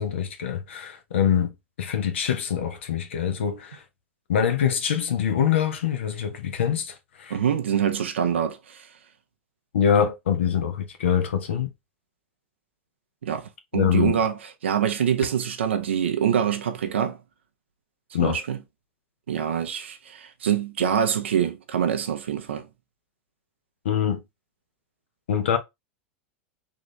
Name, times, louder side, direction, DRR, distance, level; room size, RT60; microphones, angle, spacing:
voice 1, 0.0-3.8 4.3-7.4 9.7-11.7 13.7-14.2 18.1-18.4 23.8-24.2 25.3-25.6, left 8 dB, 80° left, 0.8 m, -24 dB
voice 2, 7.3-8.9 13.2-17.2 18.2-18.6 19.3-22.7, right 8 dB, 85° right, 0.7 m, -25 dB
3.7 x 2.5 x 3.1 m
hypercardioid pair, 95°, 6 cm